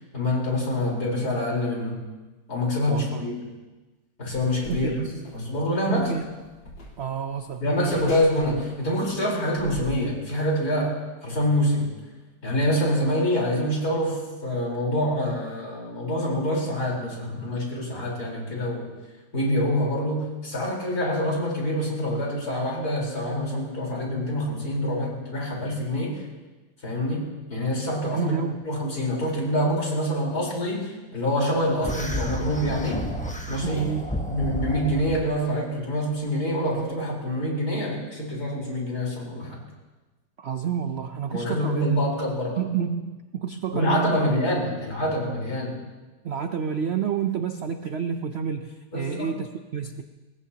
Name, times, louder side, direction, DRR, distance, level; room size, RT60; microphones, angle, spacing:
voice 1, 0.1-2.0 2.5-3.4 4.2-4.9 5.3-6.1 7.6-11.0 11.2-11.9 12.4-18.9 19.3-26.2 26.8-28.4 28.6-33.0 33.5-33.8 34.3-39.6 41.3-42.6 43.7-45.8 48.9-49.3, left 1 dB, 50° left, -3 dB, 4.8 m, -26 dB
voice 2, 2.9-3.3 4.6-5.3 5.9-6.2 7.0-8.1 28.0-28.7 33.6-34.1 40.4-42.1 42.6-44.3 46.2-50.0, right 7 dB, 80° right, 7 dB, 0.5 m, -29 dB
sound 1, 4.3-5.5 6.0-9.1 9.5-9.8, left 1 dB, 90° left, 4.2 m, -41 dB
sound 2, 31.8-35.3, equal, 5° left, 0.9 m, -31 dB
24.0 x 19.5 x 2.9 m, 1.2 s
omnidirectional pair, 2.0 m